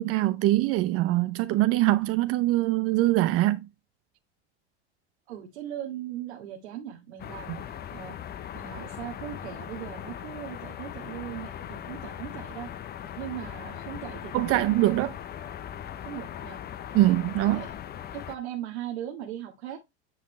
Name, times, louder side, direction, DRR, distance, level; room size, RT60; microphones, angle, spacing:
voice 1, 0.0-3.7 7.5-7.6 14.3-15.1 16.9-17.6, right 16 dB, 45° right, 0.6 m, -23 dB
voice 2, 5.3-8.2 8.5-12.7 13.2-14.7 16.0-16.6 17.5-17.8 18.1-19.8, right 11 dB, 75° right, 1.8 m, -39 dB
sound 1, 7.2-18.4, left 10 dB, 30° left, 0.7 m, -39 dB
9.3 x 5.2 x 3.2 m
hypercardioid pair, 85°, 33 cm